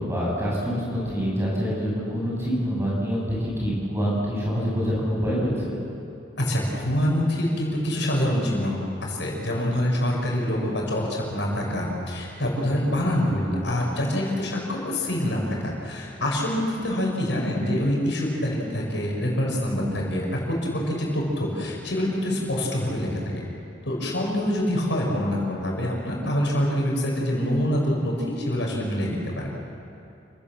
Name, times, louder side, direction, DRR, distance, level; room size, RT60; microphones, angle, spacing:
voice 1, 0.0-5.7, equal, 15° right, -5 dB, 7.6 m, -26 dB
voice 2, 6.4-23.4 23.8-29.6, equal, 70° left, -2 dB, 6.1 m, -25 dB
29.0 x 17.0 x 7.5 m, 2.7 s
head